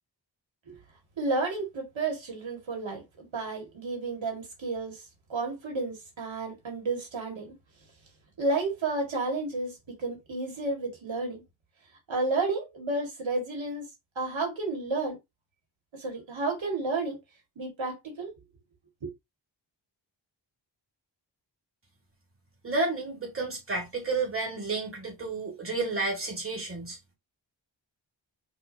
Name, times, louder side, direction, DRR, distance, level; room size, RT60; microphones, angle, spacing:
voice 1, 1.2-5.0 5.3-7.5 8.4-11.4 12.1-13.8 14.2-15.2 15.9-17.2 17.6-18.3 19.0-19.1, right 3 dB, 90° right, 1.7 m, -31 dB
voice 2, 22.6-27.1, right 3 dB, 30° right, 1.9 m, -31 dB
5.6 x 2.6 x 2.6 m
wide cardioid pair, 120°, 45 cm